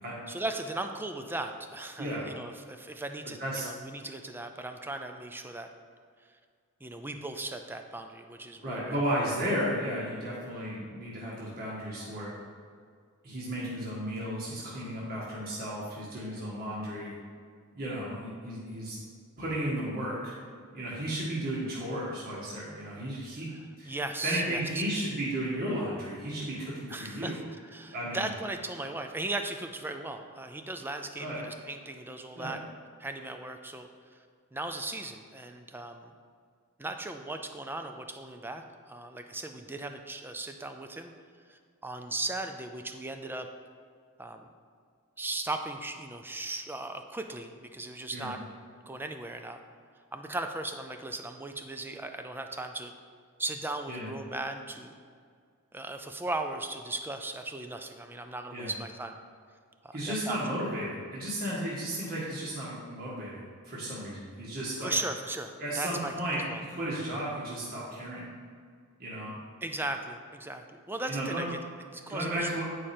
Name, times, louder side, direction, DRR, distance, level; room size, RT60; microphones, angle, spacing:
voice 1, 0.3-5.7 6.8-9.3 23.5-24.6 25.0-25.1 26.9-27.4 27.6-32.6 33.0-34.2 34.5-36.1 36.8-41.1 41.5-43.5 44.2-44.5 45.2-48.4 48.9-49.6 50.1-52.9 53.4-54.9 55.7-59.2 59.8-60.4 64.8-66.1 66.5-66.6 69.6-71.5 71.9-72.5, right 2 dB, 10° right, 6 dB, 0.4 m, -37 dB
voice 2, 8.6-12.3 13.2-17.1 17.7-19.0 19.4-20.3 20.7-23.5 23.8-23.9 24.2-27.4 27.9-28.3 31.2-31.4 32.4-32.5 48.1-48.3 53.9-54.1 58.5-58.7 59.9-64.9 65.6-68.3 69.0-69.4 71.1-71.5 72.1-72.7, right 1 dB, 45° right, -7 dB, 1.6 m, -34 dB
9.2 x 5.0 x 4.3 m, 2.1 s
head